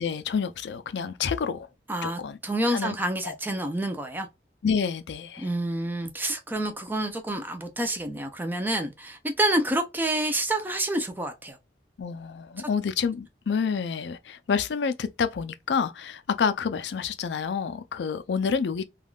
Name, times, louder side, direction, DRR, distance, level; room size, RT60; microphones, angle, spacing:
voice 1, 0.0-1.7 2.0-2.4 2.7-3.0 3.2-3.4 4.6-5.5 12.0-18.8, left 6 dB, 70° left, 0.4 m, -28 dB
voice 2, 1.9-4.3 5.4-11.6, right 1 dB, 10° right, 0.5 m, -28 dB
3.4 x 2.3 x 2.3 m
head